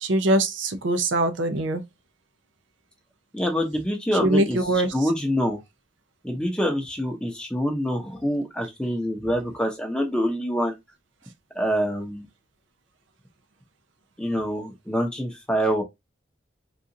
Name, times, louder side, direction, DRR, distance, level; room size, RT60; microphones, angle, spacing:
voice 1, 0.0-1.8 4.2-4.9, right 1 dB, 90° right, 0.6 m, -22 dB
voice 2, 3.3-4.6 4.9-5.6 6.2-10.7 11.5-12.3 14.2-15.8, equal, 5° left, 0.7 m, -26 dB
3.8 x 2.4 x 2.7 m
head